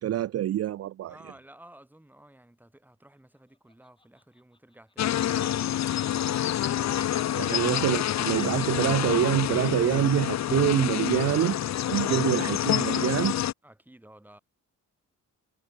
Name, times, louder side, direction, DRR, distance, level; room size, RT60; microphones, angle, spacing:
voice 1, 0.0-1.2 7.4-11.6 11.9-13.3, right 12 dB, 50° right, 0.5 m, -26 dB
voice 2, 1.1-7.7 12.0-12.6 13.6-14.4, right 1 dB, 5° right, 3.0 m, -53 dB
Laughter, 3.7-4.9 5.2-6.6 6.9-10.7, left 2 dB, 15° left, 4.5 m, -50 dB
sound 1, 5.0-13.5, left 11 dB, 55° left, 0.8 m, -27 dB
cardioid pair, 100°, 32 cm